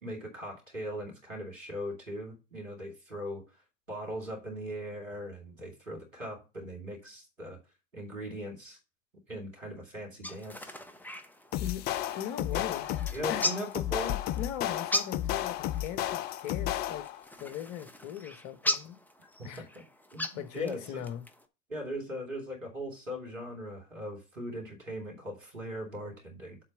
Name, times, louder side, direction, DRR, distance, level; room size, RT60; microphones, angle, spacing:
voice 1, 0.0-3.4 3.9-7.6 7.9-8.8 9.3-10.7 12.5-12.6 13.1-14.2 19.4-19.7 20.1-21.0 21.7-26.6, equal, 90° right, 2.7 m, -39 dB
sound 1, 10.2-21.5, left 1 dB, 5° left, 0.9 m, -39 dB
sound 2, 11.5-17.2, left 13 dB, 30° left, 0.3 m, -33 dB
voice 2, 12.1-12.9 13.3-13.5 14.4-17.1 17.4-19.0 19.4-19.7 20.3-21.2, left 10 dB, 45° left, 1.3 m, -39 dB
7.4 x 4.3 x 5.2 m
figure-of-eight pair, 80°, 37 cm